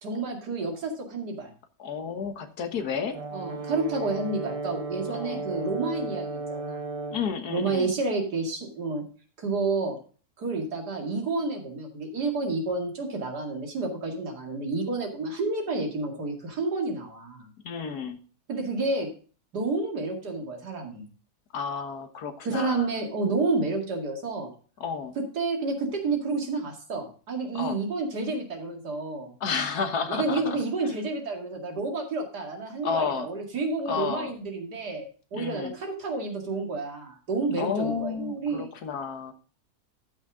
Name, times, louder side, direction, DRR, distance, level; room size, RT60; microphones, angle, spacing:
voice 1, 0.0-1.5 3.3-6.8 7.5-9.0 9.4-10.0 10.4-17.5 18.5-19.1 19.5-21.0 22.4-24.5 25.3-29.3 30.1-38.7, right 3 dB, 85° right, 2 dB, 2.8 m, -30 dB
voice 2, 1.8-3.2 5.1-5.4 7.1-7.9 17.6-18.2 21.5-22.9 24.8-25.1 27.5-27.8 29.4-30.6 32.8-33.3 33.9-34.3 35.3-35.7 37.6-39.3, left 6 dB, 75° left, 8 dB, 1.7 m, -31 dB
Brass instrument, 3.1-7.3, right 3 dB, 30° right, 0.6 m, -34 dB
13.0 x 6.1 x 3.7 m, 0.39 s
omnidirectional pair, 1.7 m